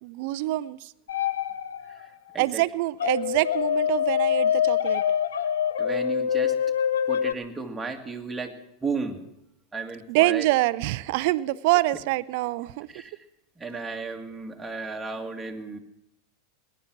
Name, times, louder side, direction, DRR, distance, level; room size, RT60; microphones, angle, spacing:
voice 1, 0.0-0.9 2.4-5.0 10.1-12.9, right 18 dB, 60° right, 17 dB, 0.5 m, -25 dB
sound 1, 1.1-2.1 3.0-7.3, left 9 dB, 80° left, 0.6 m, -25 dB
voice 2, 5.8-6.5 7.1-8.5 8.8-9.2 9.7-10.5 12.9-13.1 13.6-15.8, right 4 dB, 10° right, 3 dB, 1.9 m, -34 dB
19.0 x 10.5 x 6.0 m, 0.84 s
hypercardioid pair, 90°, 0 cm